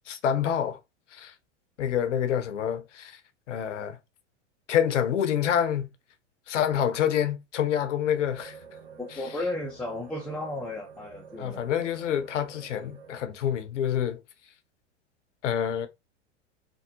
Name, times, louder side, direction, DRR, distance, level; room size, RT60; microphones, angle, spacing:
voice 1, 0.1-0.8 1.1-1.3 1.8-3.2 3.5-4.0 4.7-5.9 6.5-8.6 11.4-14.2 15.4-15.9, left 9 dB, 80° left, 0.8 m, -27 dB
sound 1, 8.2-13.2, right 5 dB, 80° right, 1.0 m, -48 dB
voice 2, 9.0-11.7, left 2 dB, 5° left, 0.4 m, -34 dB
3.5 x 2.1 x 2.9 m
hypercardioid pair, 100°, 36 cm